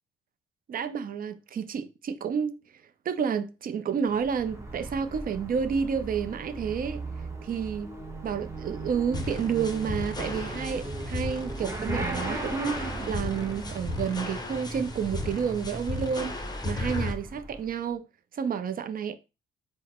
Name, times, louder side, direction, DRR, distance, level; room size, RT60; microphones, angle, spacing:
voice 1, 0.7-2.5 3.1-7.0 7.4-8.0 8.2-16.4 16.6-18.0 18.3-19.2, right 7 dB, 45° right, 0.5 m, -30 dB
Motorcycle / Accelerating revving vroom, 4.0-17.9, right 2 dB, 15° right, 0.9 m, -38 dB
sound 1, 9.1-17.1, left 2 dB, 20° left, 0.7 m, -35 dB
3.9 x 2.1 x 4.2 m
cardioid pair, 90°, 20 cm